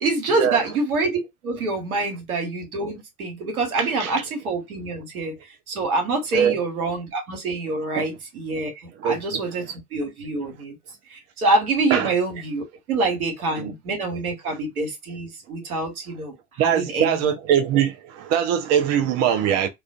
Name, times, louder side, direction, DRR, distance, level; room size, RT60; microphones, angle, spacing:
voice 1, 0.0-5.3 5.7-9.6 9.9-10.7 11.1-16.3 16.6-17.3, right 2 dB, 80° right, 1.1 m, -26 dB
voice 2, 3.8-4.1 6.3-6.6 8.0-8.1 9.0-9.4 11.9-12.1 13.6-13.7 16.6-19.7, right 9 dB, 40° right, 0.5 m, -22 dB
2.4 x 2.3 x 2.4 m
figure-of-eight pair, 70°, 43 cm